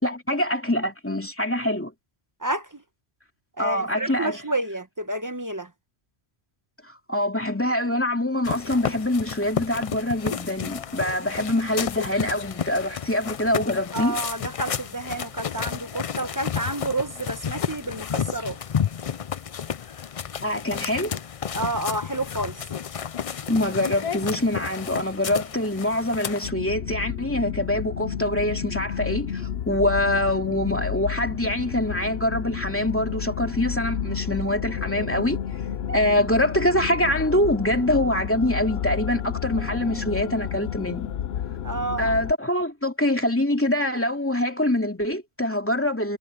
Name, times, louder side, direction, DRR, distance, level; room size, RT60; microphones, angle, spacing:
voice 1, 0.0-1.9 3.6-4.4 6.8-14.2 20.4-21.2 23.5-35.4 35.9-41.1 42.0-46.2, left 1 dB, 10° left, 2.7 m, -24 dB
voice 2, 2.4-2.8 3.6-5.7 13.9-18.6 21.5-22.6 41.6-42.1, right 2 dB, 20° right, 1.1 m, -30 dB
sound 1, 8.4-26.5, left 8 dB, 50° left, 0.4 m, -31 dB
sound 2, 26.4-42.3, left 9 dB, 70° left, 0.9 m, -31 dB
omnidirectional pair, 1.1 m